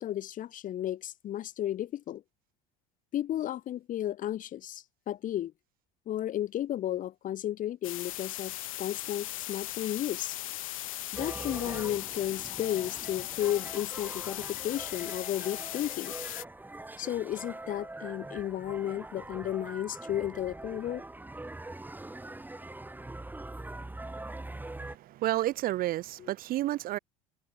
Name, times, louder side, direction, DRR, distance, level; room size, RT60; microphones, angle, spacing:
voice 1, 0.0-2.2 3.1-5.5 6.1-10.4 11.1-16.1 17.0-21.0, left 12 dB, 50° left, 3.4 m, -33 dB
sound 1, 7.8-16.4, left 15 dB, 85° left, 1.2 m, -38 dB
sound 2, 11.1-25.0, right 2 dB, 10° right, 7.6 m, -43 dB
voice 2, 24.8-27.0, right 15 dB, 60° right, 7.0 m, -31 dB
hypercardioid pair, 70°, 17 cm